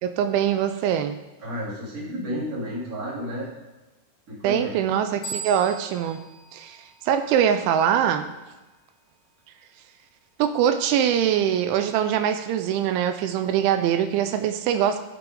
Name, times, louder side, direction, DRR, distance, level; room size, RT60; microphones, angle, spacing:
voice 1, 0.0-1.2 4.4-6.2 6.5-6.8 7.1-8.3 10.4-15.0, right 9 dB, 80° right, 9 dB, 2.9 m, -23 dB
voice 2, 1.4-3.5 4.3-4.7, equal, 20° right, -6 dB, 2.9 m, -32 dB
sound 1, 5.2-7.7, right 4 dB, 5° left, 2.9 m, -39 dB
13.5 x 6.9 x 3.8 m, 1.1 s
omnidirectional pair, 5.6 m